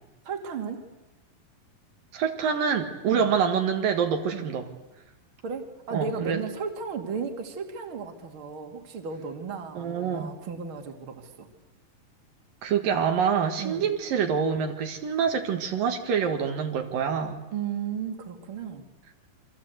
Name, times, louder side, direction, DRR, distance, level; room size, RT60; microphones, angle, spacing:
voice 1, 0.2-0.9 3.1-3.3 4.3-4.5 5.4-11.5 13.6-13.9 17.5-18.9, right 6 dB, 40° right, 4 dB, 3.0 m, -35 dB
voice 2, 2.1-4.7 5.9-6.4 9.8-10.3 12.6-17.4, right 7 dB, 75° right, 5 dB, 3.5 m, -26 dB
28.5 x 25.5 x 8.2 m, 1.0 s
omnidirectional pair, 4.1 m